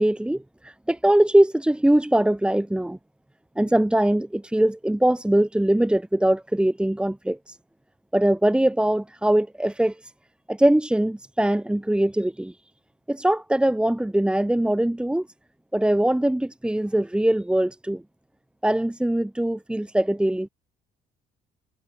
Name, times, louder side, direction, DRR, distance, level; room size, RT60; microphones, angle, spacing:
voice 1, 0.0-3.0 3.6-7.6 8.1-10.1 10.5-12.5 13.1-15.3 15.7-18.0 18.6-20.5, right 1 dB, 5° right, 3.6 m, -22 dB
cardioid pair, 110°, 17 cm